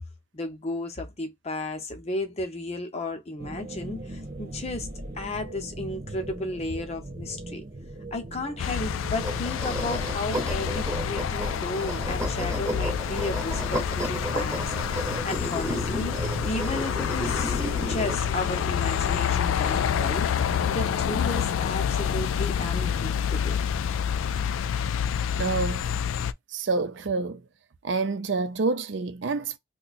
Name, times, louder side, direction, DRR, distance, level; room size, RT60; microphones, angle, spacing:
voice 1, 0.3-4.9 5.1-7.6 8.1-14.7 15.0-16.2 16.4-20.3 20.7-23.6, left 2 dB, 30° left, 0.7 m, -34 dB
sound 1, 3.4-21.2, right 1 dB, 45° right, 1.0 m, -39 dB
sound 2, 8.6-26.3, left 8 dB, 90° left, 0.3 m, -28 dB
sound 3, 9.2-18.2, equal, 15° right, 0.8 m, -33 dB
voice 2, 25.4-26.0 26.5-27.4 27.8-29.6, right 3 dB, 70° right, 0.5 m, -28 dB
2.8 x 2.2 x 4.1 m
head